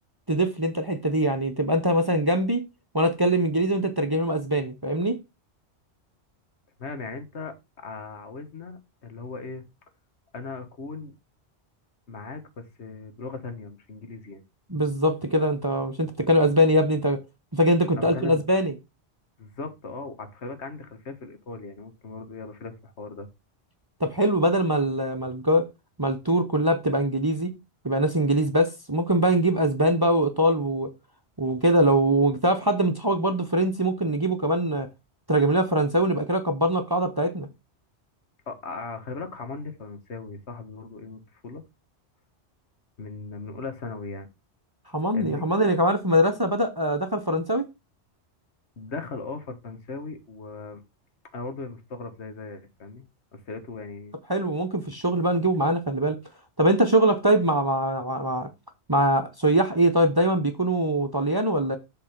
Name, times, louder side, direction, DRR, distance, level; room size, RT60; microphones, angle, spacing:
voice 1, 0.3-2.6 2.9-5.2 14.7-17.2 17.5-18.7 24.0-25.7 26.0-27.5 27.8-30.9 31.4-34.9 35.3-37.5 44.9-47.7 54.3-56.2 56.6-58.5 58.9-61.8, right 1 dB, 25° right, 0.8 m, -22 dB
voice 2, 6.8-9.6 10.3-11.1 12.1-14.4 18.0-18.5 19.4-23.3 38.5-41.6 43.0-44.3 45.1-45.4 48.8-50.8 51.3-53.0 53.3-54.1, left 4 dB, 70° left, 1.6 m, -38 dB
7.4 x 3.9 x 5.8 m
omnidirectional pair, 1.2 m